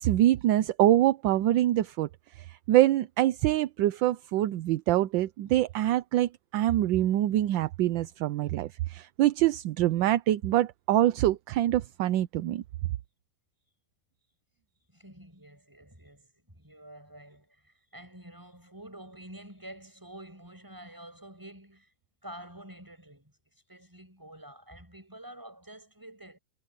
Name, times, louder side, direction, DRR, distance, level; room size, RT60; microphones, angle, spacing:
voice 1, 0.0-2.1 2.4-12.6, right 13 dB, 70° right, 1.2 m, -25 dB
voice 2, 14.9-21.9 22.2-23.3 23.7-26.4, right 1 dB, 10° right, 7.0 m, -48 dB
omnidirectional pair, 2.3 m